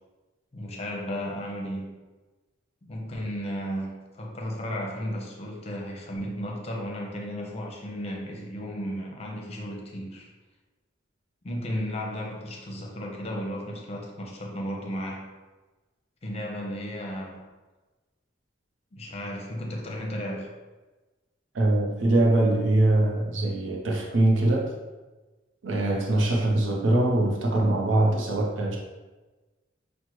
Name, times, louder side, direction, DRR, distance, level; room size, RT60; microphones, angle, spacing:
voice 1, 0.5-2.0 2.9-10.3 11.4-15.3 16.2-17.4 18.9-20.5, equal, 35° left, 0 dB, 0.7 m, -34 dB
voice 2, 21.5-24.7 25.6-28.8, right 1 dB, 80° right, -1 dB, 0.6 m, -23 dB
5.9 x 2.1 x 3.0 m, 1.2 s
head